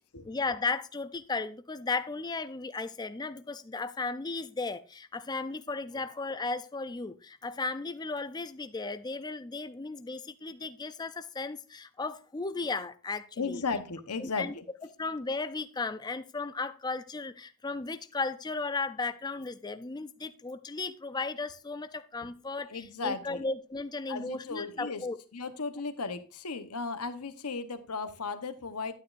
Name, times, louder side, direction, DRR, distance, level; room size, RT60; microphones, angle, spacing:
voice 1, 0.2-13.6 14.2-14.5 15.0-25.2, left 3 dB, 20° left, 11 dB, 0.4 m, -35 dB
voice 2, 13.4-14.6 22.7-23.4 24.1-25.0 25.3-28.9, left 4 dB, 90° left, 10 dB, 1.0 m, -35 dB
11.0 x 9.4 x 2.6 m, 0.35 s
head